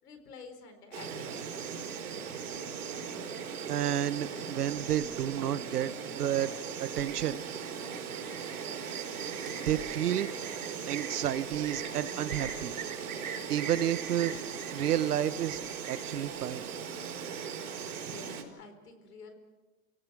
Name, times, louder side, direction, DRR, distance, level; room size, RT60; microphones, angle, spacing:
voice 1, 0.0-1.7 18.0-19.3, left 4 dB, 85° left, 7 dB, 4.5 m, -49 dB
Insect, 0.9-18.4, right 6 dB, 70° right, 4.6 m, -38 dB
voice 2, 2.9-3.3 3.7-6.5 6.8-7.4 9.6-10.3 10.9-12.7 13.5-14.3 14.7-16.7, right 11 dB, 85° right, 14 dB, 1.2 m, -31 dB
29.5 x 17.5 x 6.2 m, 1.3 s
hypercardioid pair, 160°, 45 cm